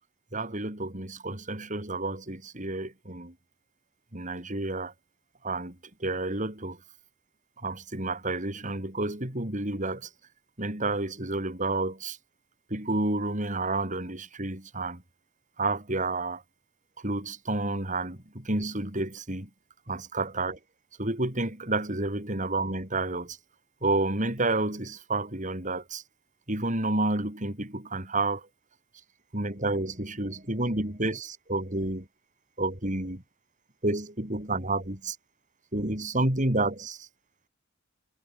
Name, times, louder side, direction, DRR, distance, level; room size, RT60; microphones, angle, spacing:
voice 1, 0.3-3.3 4.1-4.9 5.4-5.7 6.0-6.8 7.6-10.1 10.6-12.2 12.7-15.0 15.6-16.4 17.0-19.5 19.9-20.6 21.0-23.4 23.8-26.0 26.5-28.4 29.3-32.1 32.6-33.2 33.8-35.2 35.7-37.1, right 2 dB, 40° right, 4.8 m, -30 dB
head